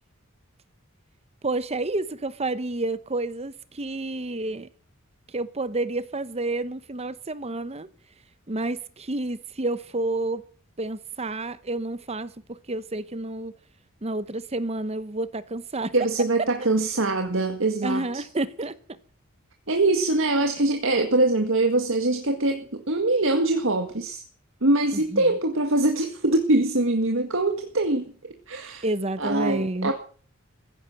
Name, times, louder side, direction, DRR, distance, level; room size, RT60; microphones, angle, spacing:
voice 1, 1.4-4.7 5.3-7.9 8.5-10.4 10.8-13.5 14.0-15.9 17.8-18.8 25.1-25.2 28.8-29.9, right 2 dB, 30° right, 0.9 m, -29 dB
voice 2, 15.9-18.2 19.7-24.2 24.6-28.1 28.5-28.9 29.2-29.9, right 2 dB, 65° right, 1.9 m, -23 dB
15.5 x 11.0 x 7.6 m
head